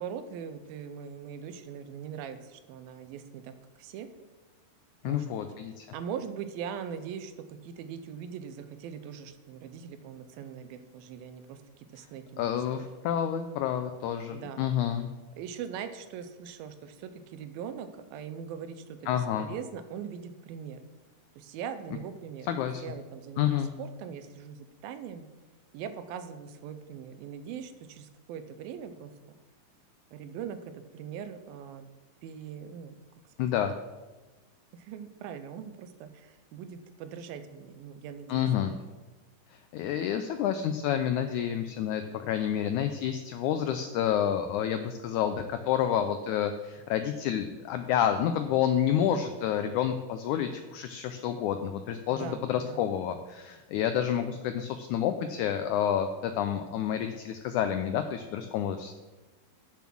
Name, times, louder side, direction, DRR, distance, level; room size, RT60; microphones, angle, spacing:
voice 1, 0.0-4.1 5.1-5.3 5.9-12.9 14.3-14.7 15.4-20.8 21.4-22.5 22.8-25.2 25.7-29.1 30.1-31.9 32.2-33.0 34.7-38.8 52.1-52.8, right 8 dB, 90° right, 10 dB, 2.5 m, -41 dB
voice 2, 5.0-5.9 12.4-15.1 19.1-19.5 22.5-22.8 23.4-23.7 33.4-33.7 38.3-38.7 39.5-58.9, left 9 dB, 90° left, 8 dB, 1.7 m, -29 dB
8.3 x 7.0 x 6.0 m, 1.2 s
omnidirectional pair, 4.1 m